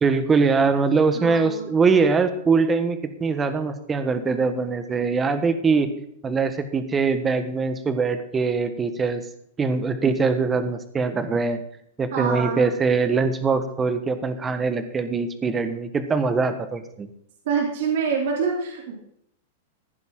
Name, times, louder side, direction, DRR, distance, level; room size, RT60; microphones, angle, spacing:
voice 1, 0.0-5.9 6.2-9.2 9.6-11.6 12.0-17.1, right 4 dB, 15° right, 10 dB, 1.3 m, -22 dB
voice 2, 1.1-1.7 12.1-12.7 17.4-18.9, right 5 dB, 65° right, 0 dB, 3.2 m, -26 dB
15.0 x 10.5 x 3.8 m, 0.73 s
hypercardioid pair, 140°, 0 cm